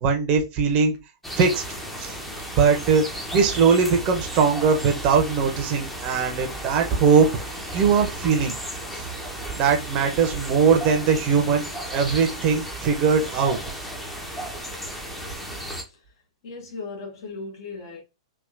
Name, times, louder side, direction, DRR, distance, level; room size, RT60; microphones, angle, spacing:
voice 1, 0.0-1.0 1.4-1.6 2.0-2.2 2.6-3.0 3.3-7.3 7.7-8.6 8.9-9.0 9.5-11.6 11.9-13.6, right 5 dB, 35° right, 0.8 m, -20 dB
sound 1, 1.2-15.8, right 1 dB, 5° left, 0.8 m, -34 dB
voice 2, 16.4-18.0, left 3 dB, 50° left, 1.3 m, -37 dB
3.5 x 2.7 x 2.6 m
figure-of-eight pair, 105°, 3 cm